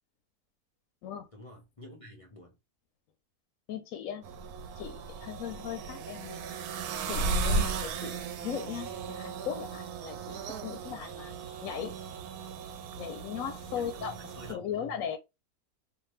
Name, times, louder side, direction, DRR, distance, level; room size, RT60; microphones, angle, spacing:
voice 1, 1.3-2.6 7.7-7.9 11.3-11.4 13.7-14.9, equal, 45° left, 0.4 m, -49 dB
voice 2, 3.7-4.2 4.8-6.4 7.0-11.3 11.6-11.9 13.0-15.2, left 9 dB, 70° left, 0.9 m, -38 dB
sound 1, 4.2-14.5, right 3 dB, 75° right, 1.0 m, -36 dB
2.6 x 2.5 x 3.0 m
omnidirectional pair, 1.7 m